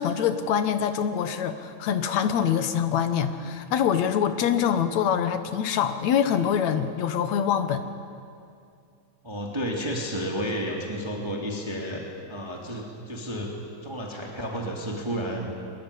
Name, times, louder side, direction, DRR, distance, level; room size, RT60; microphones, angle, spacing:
voice 1, 0.0-7.8, left 8 dB, 65° left, 10 dB, 2.2 m, -25 dB
voice 2, 9.2-12.0 12.3-15.5, equal, 10° right, 0 dB, 2.5 m, -31 dB
23.5 x 21.0 x 9.9 m, 2.4 s
omnidirectional pair, 3.8 m